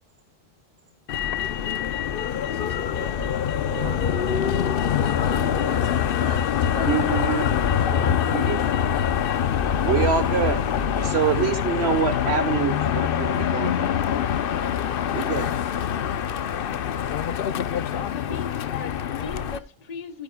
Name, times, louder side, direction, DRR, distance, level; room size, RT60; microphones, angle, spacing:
Motor vehicle (road), 1.1-19.6, left 8 dB, 55° left, 0.8 m, -24 dB
voice 1, 2.5-8.1 9.8-11.2, right 1 dB, 25° right, 2.5 m, -40 dB
voice 2, 6.9-7.5 8.3-8.8 9.8-10.6 11.0-13.9 15.1-15.5, right 8 dB, 55° right, 1.5 m, -25 dB
voice 3, 17.9-20.2, left 5 dB, 35° left, 1.2 m, -38 dB
15.5 x 10.0 x 2.3 m
omnidirectional pair, 1.3 m